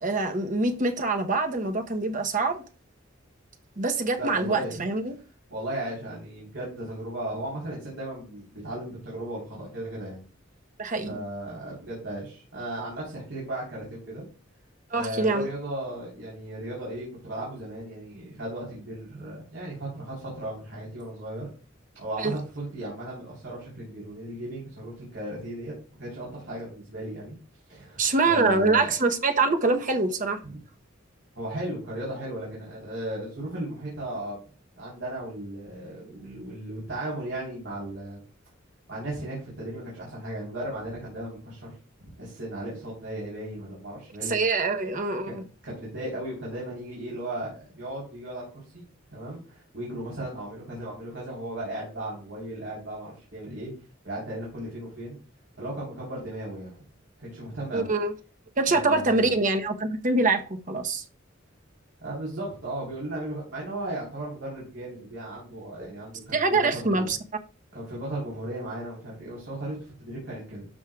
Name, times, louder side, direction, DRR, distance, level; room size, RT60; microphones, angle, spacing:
voice 1, 0.0-2.6 3.8-5.2 10.8-11.1 14.9-15.5 22.2-22.3 28.0-30.4 44.3-45.4 57.7-58.1 58.6-61.0 66.3-67.2, right 3 dB, 40° right, 1.0 m, -24 dB
voice 2, 4.2-4.8 5.5-10.2 11.1-14.2 14.9-21.5 21.9-25.7 26.0-27.4 27.7-28.9 30.4-30.6 31.3-34.4 34.8-38.2 38.9-41.7 42.0-44.3 45.3-45.4 45.6-48.8 49.1-53.7 54.0-55.2 55.6-56.8 57.2-57.9 58.7-59.3 62.0-67.1 67.7-70.7, right 1 dB, 65° right, 4.0 m, -36 dB
12.5 x 6.3 x 2.4 m
head